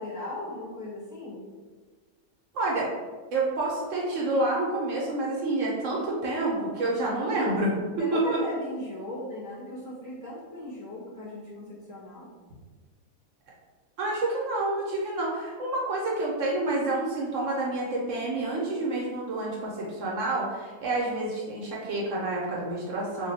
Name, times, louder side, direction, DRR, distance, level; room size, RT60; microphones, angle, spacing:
voice 1, 0.0-1.4 8.0-12.3, left 2 dB, 15° left, -8 dB, 0.8 m, -37 dB
voice 2, 2.5-2.9 3.3-7.7 8.1-8.4 14.0-23.3, right 2 dB, 65° right, -4 dB, 0.9 m, -28 dB
2.6 x 2.1 x 3.9 m, 1.4 s
omnidirectional pair, 1.5 m